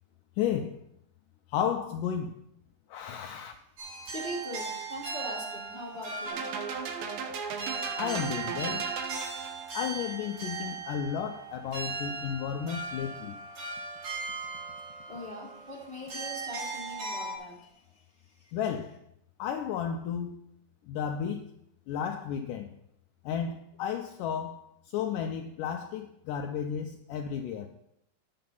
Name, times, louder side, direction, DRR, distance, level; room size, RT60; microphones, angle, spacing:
voice 1, 0.4-0.8 1.5-2.4 2.9-3.5 8.0-8.8 9.7-13.4 18.5-19.0 19.4-20.4 20.9-21.5 21.9-22.7 23.3-24.7 24.9-27.7, left 8 dB, 85° left, 1.8 m, -33 dB
sound 1, 3.8-17.4, right 4 dB, 60° right, 4.5 m, -38 dB
voice 2, 4.0-7.3 15.1-18.0 18.4-18.5, equal, 15° right, 2.0 m, -42 dB
sound 2, 6.3-9.7, right 6 dB, 75° right, 2.6 m, -36 dB
10.5 x 7.8 x 5.5 m
omnidirectional pair, 4.5 m